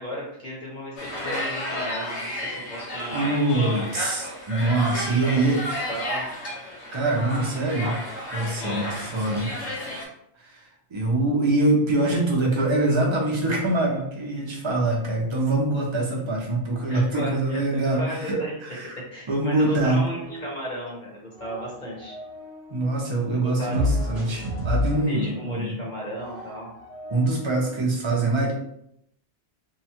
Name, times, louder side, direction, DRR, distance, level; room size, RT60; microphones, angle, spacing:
voice 1, 0.0-3.3 5.2-5.5 5.9-6.3 8.6-8.9 16.9-18.5 19.1-22.2 23.3-23.8 25.1-26.7, equal, 45° left, -5 dB, 1.0 m, -35 dB
sound 1, 1.0-10.0, left 1 dB, 75° left, 1.1 m, -32 dB
voice 2, 3.1-5.9 6.9-8.0 8.3-9.5 10.4-18.9 19.3-20.0 22.7-25.8 27.1-28.5, right 2 dB, 35° right, -1 dB, 0.5 m, -24 dB
sound 2, 20.2-21.0 21.2-22.9 23.7-27.8, left 1 dB, 55° right, 0.9 m, -32 dB
2.8 x 2.2 x 2.8 m, 0.74 s
omnidirectional pair, 1.2 m